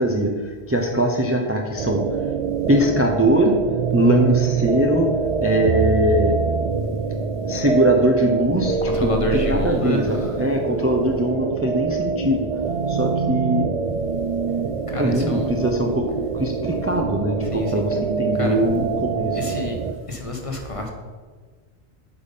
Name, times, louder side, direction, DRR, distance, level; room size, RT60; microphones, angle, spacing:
voice 1, 0.0-2.3 2.7-3.6 3.9-5.1 5.4-6.3 7.4-13.7 15.0-16.1 16.3-19.5, equal, 15° right, 1 dB, 0.6 m, -21 dB
sound 1, 1.8-19.9, right 5 dB, 55° right, 0.4 m, -25 dB
voice 2, 8.8-10.4 14.9-15.5 17.4-17.8 18.3-18.6 19.3-19.8 20.1-20.9, left 1 dB, 30° left, 2 dB, 1.2 m, -28 dB
8.1 x 5.7 x 5.4 m, 1.5 s
omnidirectional pair, 1.1 m